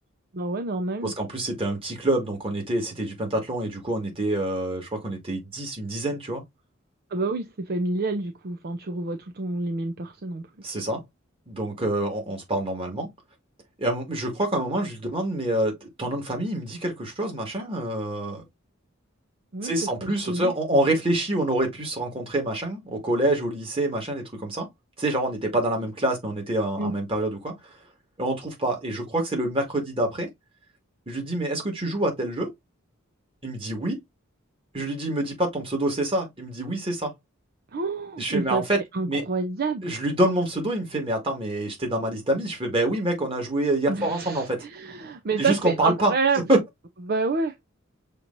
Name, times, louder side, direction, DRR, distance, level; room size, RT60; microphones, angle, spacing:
voice 1, 0.3-1.1 7.1-10.7 19.5-19.7 20.0-20.5 26.8-26.9 37.7-38.6 38.9-40.0 43.9-46.4 47.1-47.5, right 3 dB, 45° right, 0.5 m, -28 dB
voice 2, 1.0-6.4 10.6-11.0 11.5-13.1 13.8-18.4 19.6-24.7 25.0-27.5 28.2-30.3 31.1-32.5 33.4-34.0 34.7-37.1 38.2-39.2 39.8-44.6 45.4-46.1 46.5-46.6, right 1 dB, 25° right, 1.9 m, -26 dB
6.6 x 3.0 x 2.5 m
head